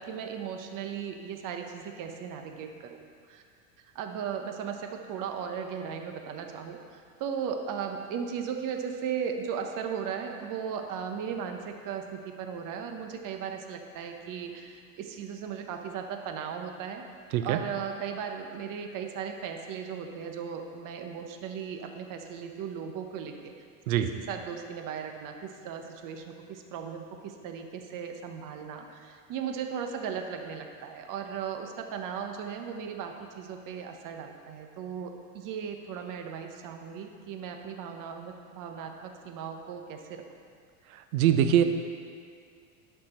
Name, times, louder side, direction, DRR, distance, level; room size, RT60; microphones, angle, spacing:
voice 1, 0.0-3.0 3.3-3.4 3.9-17.0 17.4-23.5 24.3-40.2, right 7 dB, 50° right, 5 dB, 1.0 m, -37 dB
voice 2, 41.1-41.6, right 10 dB, 85° right, 9 dB, 0.7 m, -22 dB
10.5 x 6.0 x 4.3 m, 2.2 s
supercardioid pair, 105°, 42 cm